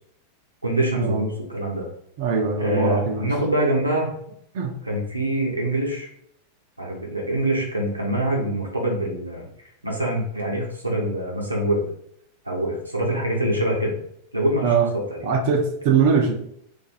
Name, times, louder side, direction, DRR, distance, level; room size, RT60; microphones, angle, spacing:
voice 1, 0.6-1.9 2.6-4.1 4.9-6.1 6.8-11.8 12.4-14.0 14.3-15.3, right 1 dB, 85° right, -2 dB, 0.8 m, -25 dB
voice 2, 2.2-3.3 4.5-4.8 14.6-14.9 15.2-16.4, right 5 dB, 50° right, 2 dB, 0.6 m, -21 dB
2.6 x 2.5 x 4.1 m, 0.71 s
figure-of-eight pair, 90°, 0 cm